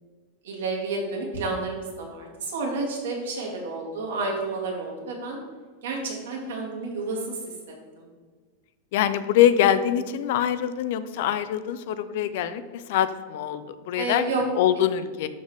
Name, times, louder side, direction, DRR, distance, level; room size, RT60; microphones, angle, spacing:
voice 1, 0.4-5.4 5.8-7.4 7.7-8.1 12.1-12.4 14.0-14.4, right 3 dB, 90° right, -1 dB, 2.2 m, -30 dB
voice 2, 8.9-14.2 14.5-15.3, left 10 dB, 55° left, 13 dB, 0.5 m, -24 dB
11.5 x 4.0 x 3.5 m, 1.5 s
supercardioid pair, 170°, 0 cm